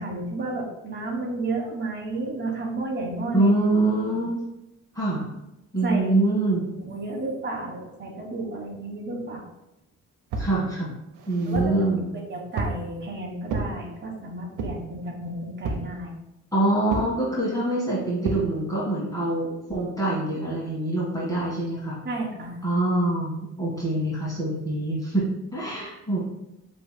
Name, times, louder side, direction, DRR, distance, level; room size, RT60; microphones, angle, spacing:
voice 1, 0.0-3.5 4.1-4.2 5.8-6.1 6.8-9.5 11.4-11.8 12.3-16.1 22.0-22.6, right 2 dB, 35° right, -1 dB, 1.3 m, -32 dB
voice 2, 3.3-4.4 5.0-5.3 5.7-6.6 10.4-10.9 11.3-12.1 16.5-22.0 22.6-26.2, right 2 dB, 10° left, -7 dB, 1.7 m, -25 dB
sound 1, 10.3-10.6 11.1-11.8 12.6-12.9 13.5-13.7 14.6-14.9 15.6-15.9 16.9-17.2 18.2-18.5, right 3 dB, 85° right, 0.7 m, -30 dB
7.6 x 3.1 x 2.2 m, 0.90 s
cardioid pair, 90°, 30 cm